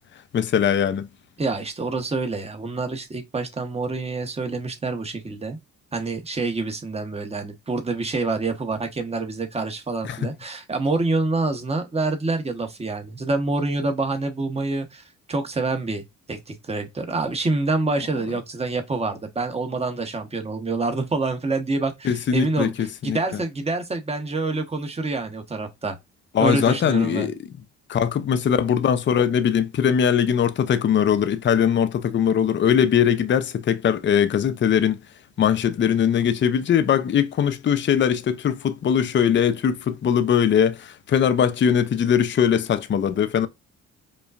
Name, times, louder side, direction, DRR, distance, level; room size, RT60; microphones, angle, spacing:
voice 1, 0.3-1.1 10.0-10.3 22.0-23.2 26.3-27.3 27.9-35.0 35.4-43.5, left 8 dB, 40° left, 0.5 m, -21 dB
voice 2, 1.4-5.6 5.9-16.0 16.3-22.7 23.0-26.0 26.4-27.3, right 3 dB, 20° right, 1.0 m, -26 dB
5.2 x 2.3 x 2.4 m
cardioid pair, 90°, 30 cm